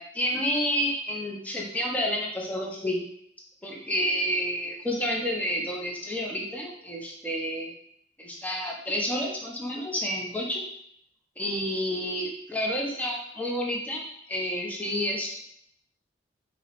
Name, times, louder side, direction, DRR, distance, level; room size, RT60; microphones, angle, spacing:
voice 1, 0.0-3.0 3.6-7.7 8.2-10.6 11.4-14.0 14.3-15.4, equal, 10° left, -1 dB, 0.4 m, -29 dB
2.8 x 2.0 x 2.8 m, 0.70 s
head